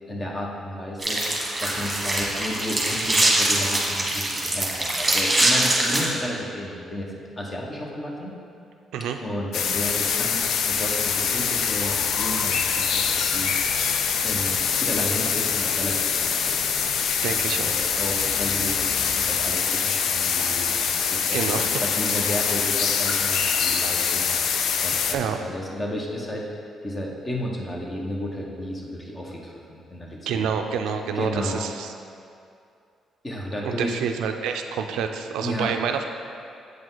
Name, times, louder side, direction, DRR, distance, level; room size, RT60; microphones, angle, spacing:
voice 1, 0.1-7.1 7.4-8.3 9.2-13.8 14.2-16.6 17.2-26.6 26.8-30.5 31.1-31.6 33.2-34.0 35.4-35.7, equal, 25° left, -2 dB, 1.2 m, -33 dB
sound 1, 1.0-6.1, right 1 dB, 15° right, 1.4 m, -23 dB
sound 2, 9.5-25.1, left 6 dB, 75° left, 0.4 m, -24 dB
voice 2, 17.2-17.7 21.3-21.9 25.1-25.4 30.3-31.9 33.6-36.0, right 7 dB, 90° right, 5 dB, 0.4 m, -28 dB
8.0 x 5.1 x 3.9 m, 2.4 s
cardioid pair, 90°, 0 cm